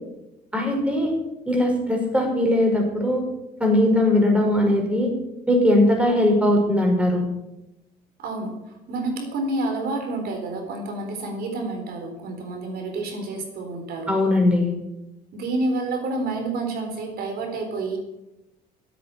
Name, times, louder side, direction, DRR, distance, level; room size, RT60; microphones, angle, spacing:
voice 1, 0.5-1.1 1.5-3.2 3.6-5.1 5.5-7.2 14.1-14.7, left 1 dB, 5° right, 1 dB, 5.3 m, -20 dB
voice 2, 8.2-14.1 15.3-18.0, right 2 dB, 65° right, 3 dB, 4.0 m, -29 dB
16.0 x 9.0 x 8.4 m, 0.93 s
cardioid pair, 110°, 17 cm